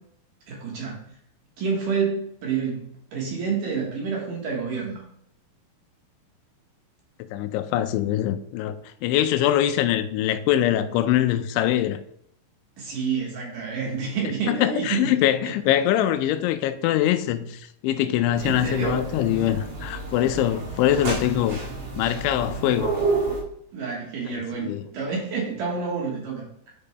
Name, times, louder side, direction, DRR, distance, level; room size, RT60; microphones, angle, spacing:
voice 1, 0.5-1.0 1.6-5.0 12.8-15.1 15.4-15.5 18.4-19.1 23.7-26.7, right 5 dB, 60° right, 2.4 m, -29 dB
voice 2, 7.3-12.0 14.5-21.6 22.0-22.9 24.3-24.9, left 12 dB, 85° left, 2.9 m, -23 dB
sound 1, 18.4-23.4, right 3 dB, 85° right, 4.5 m, -30 dB
11.0 x 5.1 x 2.2 m
omnidirectional pair, 5.2 m